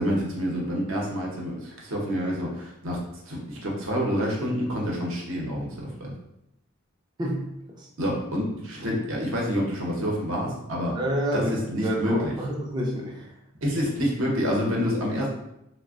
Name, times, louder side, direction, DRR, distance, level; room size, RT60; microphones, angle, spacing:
voice 1, 0.0-6.1 8.0-11.0 11.3-12.3 13.6-15.3, equal, 70° right, -2 dB, 0.7 m, -28 dB
voice 2, 7.2-7.9 10.9-11.6 11.8-13.4, equal, 20° right, -1 dB, 0.3 m, -29 dB
3.2 x 2.1 x 2.4 m, 0.84 s
head